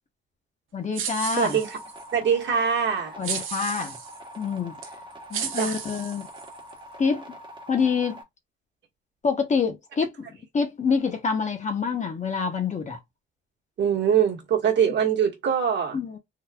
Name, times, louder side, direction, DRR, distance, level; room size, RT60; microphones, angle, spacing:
voice 1, 0.7-1.6 3.2-3.9 4.4-4.8 5.3-6.2 7.0-7.2 7.7-8.2 9.2-10.3 10.5-13.0 15.9-16.2, left 5 dB, 35° left, 0.9 m, -26 dB
sound 1, 0.9-2.1 3.2-4.2 4.8-4.9 5.3-6.7, right 8 dB, 85° right, 1.0 m, -34 dB
sound 2, 1.4-8.2, equal, 25° right, 1.2 m, -44 dB
voice 2, 1.4-1.8 2.1-3.1 5.6-5.8 13.8-16.0, right 8 dB, 65° right, 1.5 m, -23 dB
3.9 x 2.7 x 2.3 m
cardioid pair, 90°, 20 cm